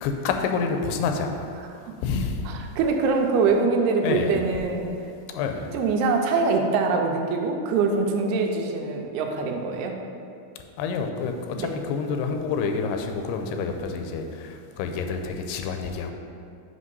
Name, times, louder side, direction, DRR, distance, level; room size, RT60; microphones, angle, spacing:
voice 1, 0.0-2.5 4.0-4.5 5.3-5.7 10.8-16.1, left 5 dB, 85° left, 5 dB, 2.6 m, -28 dB
voice 2, 2.5-4.9 5.7-10.0 11.6-11.7, right 4 dB, 85° right, 3 dB, 2.6 m, -23 dB
7.8 x 3.2 x 5.3 m, 2.4 s
omnidirectional pair, 4.6 m